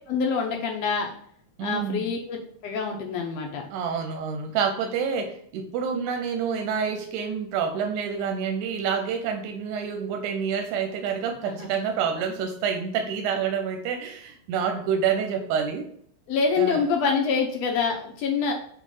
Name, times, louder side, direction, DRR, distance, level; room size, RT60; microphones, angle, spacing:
voice 1, 0.1-1.1 1.6-3.7 11.4-11.7 16.3-18.5, left 5 dB, 70° left, 2 dB, 1.8 m, -26 dB
voice 2, 1.6-2.1 3.7-15.9 16.6-16.9, right 6 dB, 90° right, 5 dB, 2.1 m, -28 dB
6.6 x 3.0 x 5.3 m, 0.63 s
omnidirectional pair, 3.3 m